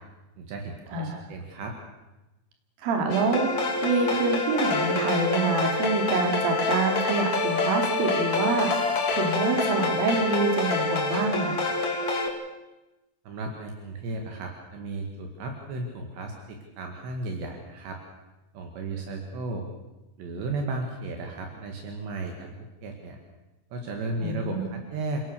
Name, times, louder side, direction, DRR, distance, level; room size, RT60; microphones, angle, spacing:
voice 1, 0.4-1.7 13.3-18.0 18.5-19.7 20.2-22.5 22.8-23.2 23.7-25.2, right 2 dB, 70° right, 3 dB, 4.2 m, -34 dB
voice 2, 0.9-1.2 2.8-11.7 24.2-24.7, right 3 dB, 55° right, 4 dB, 4.5 m, -26 dB
sound 1, 3.1-12.3, left 3 dB, 30° left, 2.5 m, -27 dB
29.0 x 18.0 x 6.9 m, 1.0 s
omnidirectional pair, 5.3 m